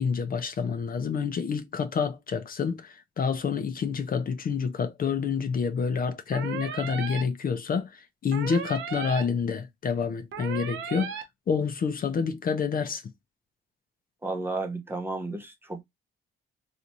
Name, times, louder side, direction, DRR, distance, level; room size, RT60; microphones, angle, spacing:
voice 1, 0.0-11.2 11.5-13.0, left 6 dB, 45° left, 0.7 m, -28 dB
sound 1, 6.3-7.2 8.3-9.2 10.3-11.2, right 7 dB, 75° right, 0.9 m, -35 dB
voice 2, 14.2-15.8, right 2 dB, 10° right, 0.8 m, -33 dB
3.3 x 2.9 x 2.6 m
cardioid pair, 90°, 20 cm